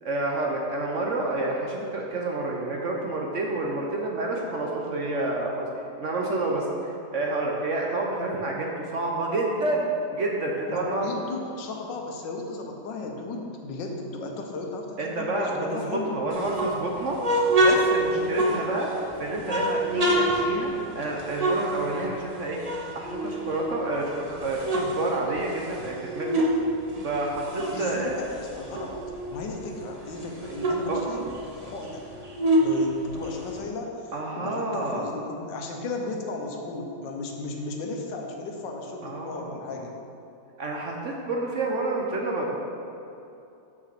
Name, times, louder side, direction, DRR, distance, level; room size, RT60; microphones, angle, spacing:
voice 1, 0.0-5.7 6.0-6.7 7.1-11.1 15.0-15.7 15.9-17.2 17.6-26.4 27.0-28.1 30.9-31.0 34.1-35.0 39.0-39.8 40.6-42.6, right 2 dB, 55° right, -1 dB, 1.0 m, -29 dB
voice 2, 10.7-16.1 27.7-29.0 29.3-32.1 32.6-39.9, left 3 dB, 90° left, 2 dB, 1.6 m, -35 dB
sound 1, 16.3-19.0 19.4-22.3 22.6-23.9 24.3-26.6 26.9-29.4 29.8-29.9 30.1-33.6, right 1 dB, 35° right, 0.6 m, -26 dB
6.3 x 6.0 x 5.9 m, 2.8 s
omnidirectional pair, 1.9 m